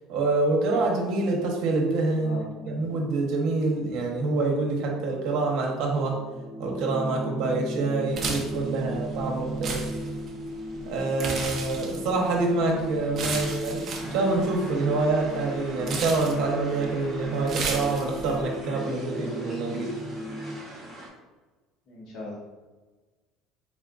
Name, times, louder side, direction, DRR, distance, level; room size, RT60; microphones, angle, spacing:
voice 1, 0.1-2.4 2.7-6.2 6.6-9.8 10.8-19.9, right 3 dB, 65° right, 0 dB, 1.0 m, -26 dB
voice 2, 2.2-2.9 21.9-22.4, left 2 dB, 50° left, -3 dB, 1.1 m, -40 dB
sound 1, 2.6-20.6, right 1 dB, 5° left, 0.6 m, -37 dB
sound 2, 8.1-18.4, right 4 dB, 35° right, 0.7 m, -36 dB
sound 3, 13.9-21.1, right 1 dB, 15° right, 1.0 m, -45 dB
4.2 x 3.6 x 2.5 m, 1.3 s
cardioid pair, 155°, 0 cm